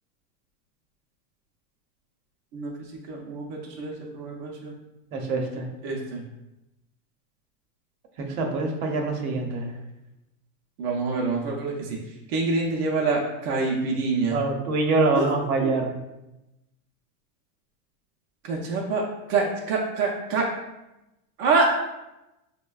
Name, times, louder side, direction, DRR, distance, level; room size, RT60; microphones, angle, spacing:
voice 1, 2.5-4.7 5.8-6.2 10.8-12.0 12.3-14.4 15.1-15.3 15.6-15.7 18.4-19.0 19.3-20.5 21.4-21.7, right 3 dB, 45° right, -2 dB, 0.5 m, -26 dB
voice 2, 5.1-5.7 8.2-9.8 14.3-16.0, right 3 dB, 70° right, 1 dB, 0.8 m, -25 dB
5.1 x 2.2 x 2.2 m, 0.96 s
supercardioid pair, 160°, 46 cm